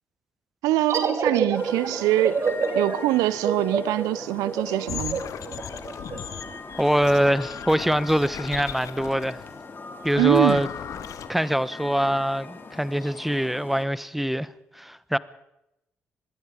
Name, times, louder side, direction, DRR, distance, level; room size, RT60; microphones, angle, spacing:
voice 1, 0.6-2.4 2.7-5.2 10.2-10.6, right 16 dB, 75° right, 0.8 m, -23 dB
sound 1, 0.9-6.2, right 5 dB, 50° right, 2.9 m, -28 dB
sound 2, 1.5-13.8, left 4 dB, 35° left, 3.6 m, -41 dB
sound 3, 4.9-9.5 10.0-11.3, left 9 dB, 60° left, 1.2 m, -37 dB
voice 2, 6.8-9.4 10.0-10.7 11.3-14.5 14.8-15.2, equal, 5° right, 1.1 m, -23 dB
25.5 x 20.5 x 5.0 m
hypercardioid pair, 40°, 6 cm